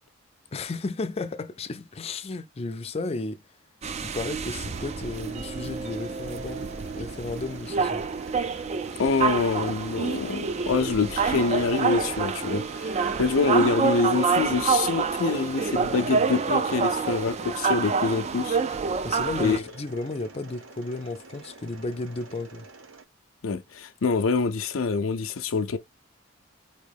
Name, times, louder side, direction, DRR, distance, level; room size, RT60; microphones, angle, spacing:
voice 1, 0.5-3.5 4.0-8.1 19.0-22.7, left 3 dB, 30° left, 0.4 m, -33 dB
sound 1, 3.8-19.6, right 5 dB, 35° right, 0.3 m, -27 dB
Mechanisms, 4.5-23.0, right 3 dB, 75° right, 0.7 m, -48 dB
voice 2, 9.0-18.6 19.4-19.6 23.4-25.8, left 4 dB, 85° left, 0.5 m, -26 dB
4.4 x 3.0 x 3.4 m
head